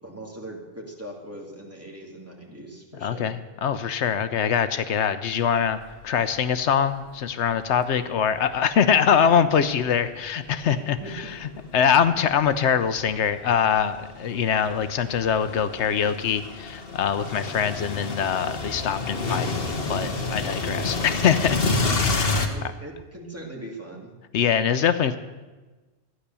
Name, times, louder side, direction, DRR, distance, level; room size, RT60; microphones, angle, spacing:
voice 1, 0.0-3.3 10.6-11.1 22.4-24.2, right 1 dB, 10° right, -1 dB, 2.3 m, -40 dB
voice 2, 3.0-11.2 11.7-22.4 24.3-25.2, left 7 dB, 75° left, 12 dB, 0.9 m, -23 dB
sound 1, 5.7-5.9 6.4-6.5 7.5-9.1 9.8-22.5, left 3 dB, 55° left, 1.4 m, -30 dB
13.0 x 10.0 x 6.8 m, 1.2 s
omnidirectional pair, 1.2 m